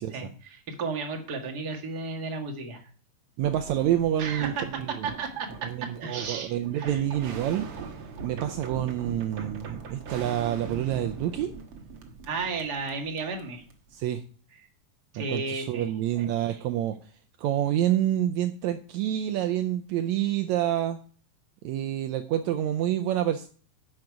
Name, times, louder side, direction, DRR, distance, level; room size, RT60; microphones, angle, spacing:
voice 1, 0.0-2.8 4.2-4.6 5.0-5.7 6.0-7.0 12.3-13.6 15.1-16.6, right 4 dB, 35° right, 2 dB, 1.8 m, -34 dB
sound 1, 3.4-13.9, right 4 dB, 55° right, 1.7 m, -41 dB
voice 2, 3.4-5.1 5.6-7.7 8.2-11.5 13.9-14.2 15.2-17.0 17.4-21.0 21.6-23.5, right 12 dB, 85° right, 8 dB, 1.6 m, -28 dB
10.5 x 6.6 x 4.8 m, 0.42 s
omnidirectional pair, 3.9 m